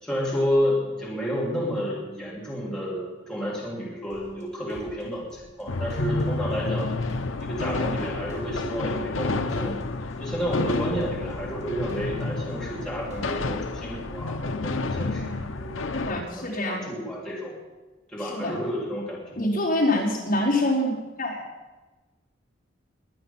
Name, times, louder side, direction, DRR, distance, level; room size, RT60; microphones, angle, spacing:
voice 1, 0.0-6.9 7.4-9.8 10.2-15.7 16.3-17.6 18.1-19.4, equal, 5° left, -6 dB, 3.1 m, -30 dB
sound 1, 4.1-4.4 4.7-5.6 5.9-6.8 7.1-8.0 8.3-9.2 9.5-10.4 10.7-11.6 11.9-12.8 13.1-13.7, left 1 dB, 35° right, 3.5 m, -47 dB
sound 2, 5.7-16.2, left 2 dB, 75° left, 0.8 m, -30 dB
voice 2, 15.9-16.9 18.2-18.6 19.4-21.4, left 1 dB, 45° left, -5 dB, 4.6 m, -25 dB
22.0 x 9.6 x 5.8 m, 1.2 s
head